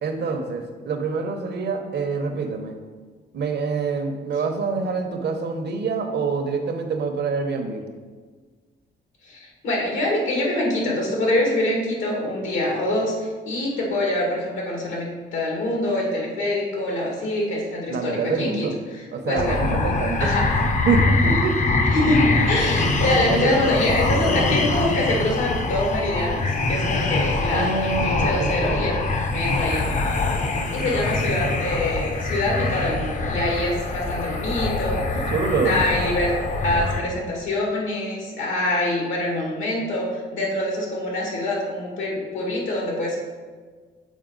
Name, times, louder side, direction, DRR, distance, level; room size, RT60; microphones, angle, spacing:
voice 1, 0.0-2.7 3.3-7.8 17.9-18.7 19.1-20.3 20.9-21.6 23.3-23.7 27.5-28.8 35.3-35.9, right 4 dB, 55° right, 5 dB, 0.9 m, -26 dB
voice 2, 9.2-19.6 20.2-20.5 21.9-28.9 29.3-29.9 30.7-35.3 35.6-36.3 36.6-43.2, left 1 dB, 80° left, -2 dB, 2.0 m, -25 dB
sound 1, 19.4-37.0, left 3 dB, 40° left, 0.7 m, -24 dB
7.3 x 4.2 x 3.9 m, 1.5 s
cardioid pair, 90°, 20 cm